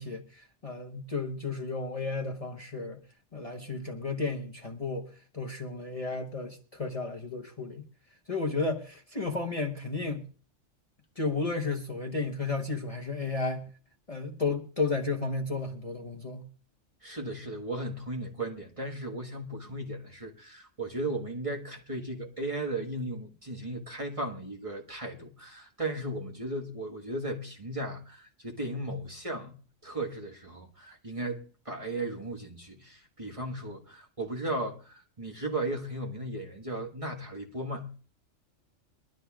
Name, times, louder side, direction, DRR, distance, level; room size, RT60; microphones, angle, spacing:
voice 1, 0.0-3.0 3.3-5.1 5.3-7.8 8.3-10.2 11.2-13.7 14.1-16.5, left 3 dB, 30° left, 1.1 m, -33 dB
voice 2, 17.0-29.6 29.8-37.9, right 1 dB, 25° right, 1.6 m, -36 dB
22.5 x 12.0 x 2.4 m
omnidirectional pair, 1.3 m